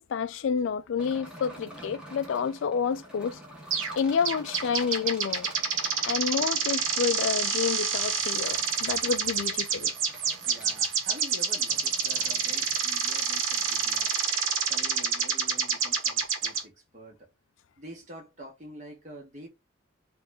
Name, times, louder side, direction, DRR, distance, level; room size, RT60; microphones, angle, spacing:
voice 1, 0.0-3.4 4.0-5.5 6.1-9.9, left 6 dB, 70° left, 0.3 m, -29 dB
sound 1, 1.0-12.8, equal, 5° right, 0.9 m, -48 dB
sound 2, 3.7-4.0 4.2-16.6, right 5 dB, 80° right, 1.1 m, -28 dB
voice 2, 10.4-14.1 14.6-17.3 17.8-19.5, equal, 35° right, 1.2 m, -46 dB
3.5 x 2.5 x 3.3 m
head